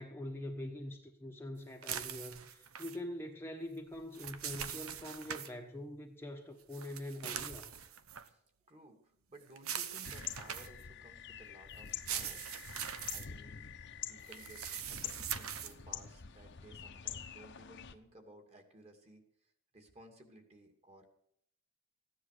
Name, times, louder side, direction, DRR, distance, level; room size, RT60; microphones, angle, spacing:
voice 1, 0.0-7.7, left 1 dB, 10° left, 2 dB, 1.2 m, -44 dB
sound 1, 1.8-3.0 3.9-5.5 6.7-8.3 9.6-10.8 11.9-13.3 14.3-15.7, right 9 dB, 85° right, 1.0 m, -42 dB
voice 2, 8.2-12.5 13.1-13.6 14.1-21.1, right 1 dB, 30° right, 4 dB, 2.5 m, -58 dB
sound 2, 10.0-17.9, left 8 dB, 55° left, 1.0 m, -46 dB
15.5 x 10.0 x 6.6 m, 0.72 s
head